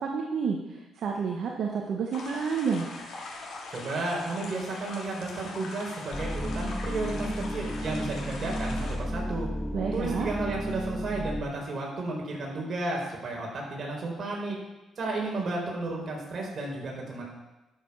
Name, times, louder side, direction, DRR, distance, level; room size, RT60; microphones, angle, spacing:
voice 1, 0.0-2.9 9.7-10.3, right 5 dB, 65° right, 1 dB, 1.3 m, -30 dB
sound 1, 2.1-8.9, left 3 dB, 70° left, 3.0 m, -42 dB
voice 2, 3.7-9.5 9.9-14.6 15.0-17.2, right 2 dB, 50° right, -1 dB, 4.2 m, -33 dB
sound 2, 6.1-11.4, equal, ahead, 0.8 m, -33 dB
12.5 x 7.0 x 5.6 m, 1.1 s
cardioid pair, 90°, 0 cm